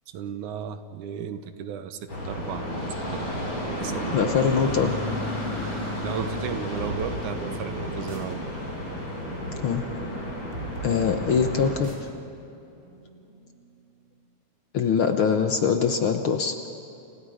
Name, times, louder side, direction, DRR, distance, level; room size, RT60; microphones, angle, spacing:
voice 1, 0.1-3.4 3.8-4.3 6.0-8.4, right 8 dB, 85° right, 9 dB, 2.6 m, -35 dB
sound 1, 2.1-11.7, left 1 dB, 40° left, 7.5 m, -32 dB
voice 2, 4.1-4.9 9.6-9.8 10.8-11.9 14.7-16.5, left 6 dB, 60° left, 6 dB, 1.5 m, -23 dB
sound 2, 6.8-14.1, right 2 dB, 25° right, 3.8 m, -44 dB
29.5 x 29.5 x 5.1 m, 2.8 s
omnidirectional pair, 3.4 m